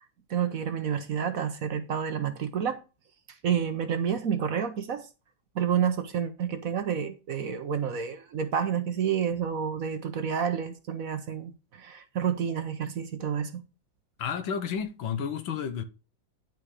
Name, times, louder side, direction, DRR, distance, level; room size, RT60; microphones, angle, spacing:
voice 1, 0.3-2.8 3.4-5.0 5.5-13.6, right 7 dB, 55° right, 1.2 m, -29 dB
voice 2, 14.2-15.8, left 7 dB, 90° left, 1.8 m, -31 dB
11.0 x 4.7 x 4.9 m
omnidirectional pair, 2.1 m